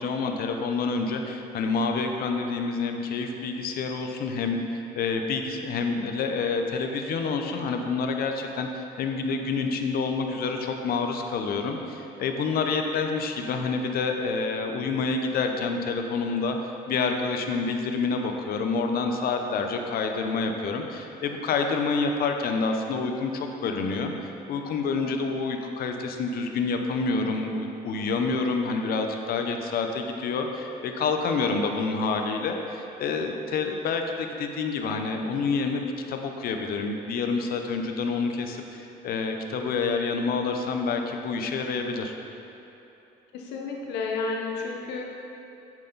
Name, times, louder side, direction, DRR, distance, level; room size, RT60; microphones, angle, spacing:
voice 1, 0.0-16.6 16.9-24.1 24.5-42.1, left 4 dB, 65° left, 4 dB, 0.8 m, -28 dB
voice 2, 43.3-45.0, left 4 dB, 90° left, 0 dB, 1.1 m, -31 dB
7.9 x 7.3 x 4.0 m, 3.0 s
cardioid pair, 110°, 17 cm